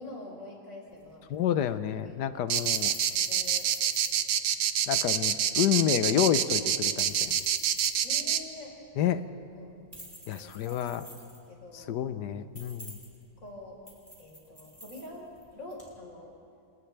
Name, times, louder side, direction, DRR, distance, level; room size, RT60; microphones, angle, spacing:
voice 1, 0.0-1.2 2.0-2.1 3.1-3.7 8.0-8.8 9.5-9.8 10.2-11.0 11.5-12.1 13.4-13.8 14.2-16.3, left 1 dB, 50° left, -2 dB, 4.9 m, -45 dB
sound 1, 0.9-16.0, equal, 15° right, 3.2 m, -51 dB
voice 2, 1.3-2.9 4.9-7.4 9.0-9.2 10.3-11.0 11.7-13.0, left 10 dB, 85° left, 12 dB, 1.4 m, -29 dB
sound 2, 2.5-8.4, right 9 dB, 90° right, 1.4 m, -26 dB
28.5 x 27.5 x 3.4 m, 2.4 s
omnidirectional pair, 1.7 m